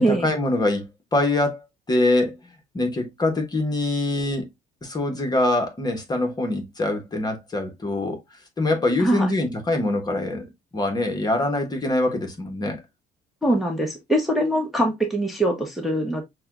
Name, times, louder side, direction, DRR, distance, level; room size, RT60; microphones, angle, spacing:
voice 1, 0.0-2.4 2.7-4.5 4.8-8.2 8.6-12.8, left 2 dB, 25° left, 1.1 m, -24 dB
voice 2, 9.0-9.3 13.4-16.2, right 1 dB, ahead, 0.9 m, -23 dB
6.5 x 2.3 x 2.4 m
cardioid pair, 110°, 17 cm